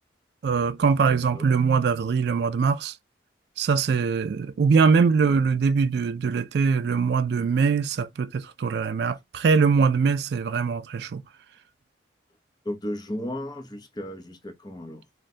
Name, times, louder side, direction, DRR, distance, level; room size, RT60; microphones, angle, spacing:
voice 1, 0.4-2.9 3.6-11.2, right 5 dB, 60° right, 0.3 m, -22 dB
voice 2, 1.1-1.5 12.6-15.0, left 1 dB, 20° left, 0.6 m, -34 dB
3.6 x 2.1 x 4.1 m
head